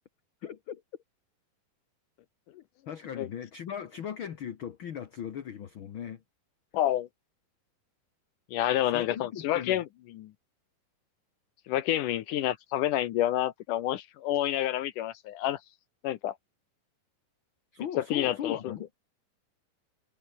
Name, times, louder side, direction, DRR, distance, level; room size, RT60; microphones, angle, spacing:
voice 1, 0.4-0.8 2.9-6.2 8.9-9.8 17.7-18.9, left 9 dB, 55° left, 1.4 m, -38 dB
voice 2, 6.7-7.1 8.5-9.9 10.1-10.3 11.7-15.6 16.0-16.3 18.0-18.8, left 13 dB, 70° left, 2.3 m, -28 dB
omnidirectional pair, 4.1 m